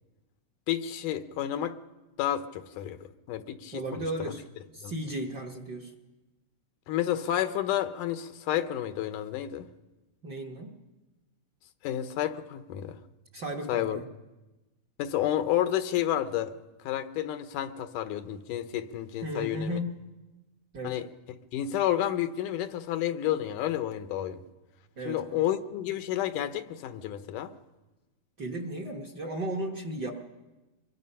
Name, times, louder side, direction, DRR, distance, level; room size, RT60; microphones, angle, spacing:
voice 1, 0.7-1.7 2.2-3.0 3.3-4.3 4.8-4.9 6.9-9.7 11.8-13.0 13.7-14.0 15.0-16.5 16.8-19.8 20.8-21.1 21.5-24.4 25.1-27.5, left 11 dB, 85° left, 10 dB, 2.4 m, -30 dB
voice 2, 3.7-4.4 4.7-5.9 10.2-10.7 13.3-14.1 19.2-20.0 20.7-21.0 25.0-25.4 28.4-30.1, right 1 dB, 50° right, 4 dB, 1.3 m, -35 dB
25.0 x 22.0 x 5.6 m, 1.1 s
omnidirectional pair, 3.6 m